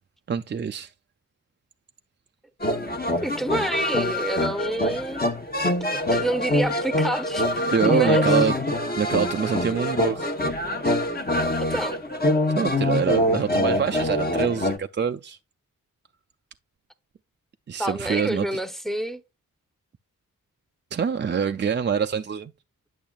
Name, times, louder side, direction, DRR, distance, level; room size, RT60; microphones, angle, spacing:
voice 1, 0.3-0.9 7.7-8.5 9.0-10.3 12.5-15.4 17.7-18.6 20.9-22.5, right 6 dB, 35° right, 0.4 m, -25 dB
sound 1, 2.6-14.8, left 1 dB, 25° left, 1.0 m, -24 dB
voice 2, 3.2-5.2 5.9-8.4 11.6-12.0 17.8-19.2, right 1 dB, ahead, 0.8 m, -28 dB
8.7 x 6.2 x 2.3 m
cardioid pair, 45°, 34 cm